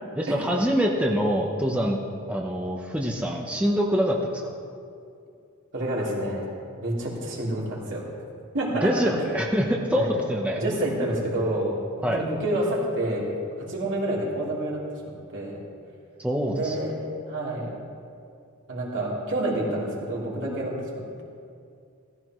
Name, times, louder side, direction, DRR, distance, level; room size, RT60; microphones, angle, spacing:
voice 1, 0.2-2.0 2.3-4.5 8.8-10.6 12.0-12.2 16.2-16.7, equal, 5° right, -1 dB, 0.8 m, -25 dB
voice 2, 5.7-6.5 6.8-8.1 8.5-8.9 9.9-10.1 10.6-13.3 13.6-15.6 16.5-17.0 17.3-17.8 18.7-21.2, right 1 dB, 60° right, -5 dB, 3.3 m, -28 dB
17.5 x 15.0 x 3.1 m, 2.4 s
head